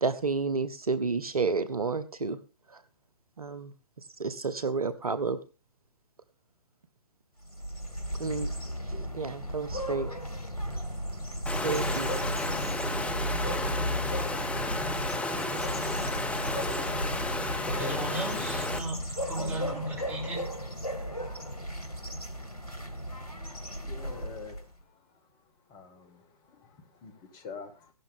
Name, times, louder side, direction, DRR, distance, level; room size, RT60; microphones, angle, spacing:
voice 1, 0.0-2.4 3.4-3.7 4.2-5.4 8.2-8.5 9.1-10.1 11.6-12.1, right 4 dB, 70° right, 14 dB, 0.9 m, -30 dB
sound 1, 7.4-24.7, equal, 80° left, 2.8 m, -35 dB
Water, 11.5-18.8, left 2 dB, 5° left, 1.3 m, -32 dB
voice 2, 17.8-20.4, right 1 dB, 10° right, -2 dB, 6.4 m, -35 dB
voice 3, 23.8-24.6 25.7-27.9, left 5 dB, 20° left, 8 dB, 1.8 m, -46 dB
16.0 x 12.0 x 3.7 m, 0.34 s
figure-of-eight pair, 130°, 19 cm